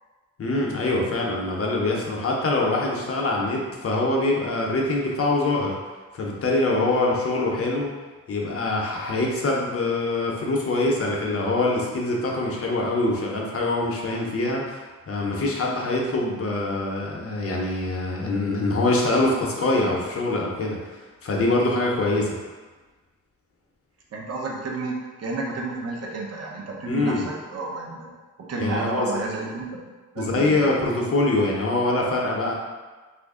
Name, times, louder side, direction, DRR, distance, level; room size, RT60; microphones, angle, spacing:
voice 1, 0.4-5.8 6.1-7.9 8.3-20.8 21.2-22.4 26.8-27.3 28.6-29.1 30.2-32.5, left 2 dB, 45° left, -2 dB, 0.7 m, -24 dB
voice 2, 24.1-28.1 28.4-29.8 30.1-30.7, right 3 dB, 50° right, -2 dB, 0.7 m, -31 dB
3.0 x 2.5 x 3.6 m, 1.3 s
wide cardioid pair, 130°, 32 cm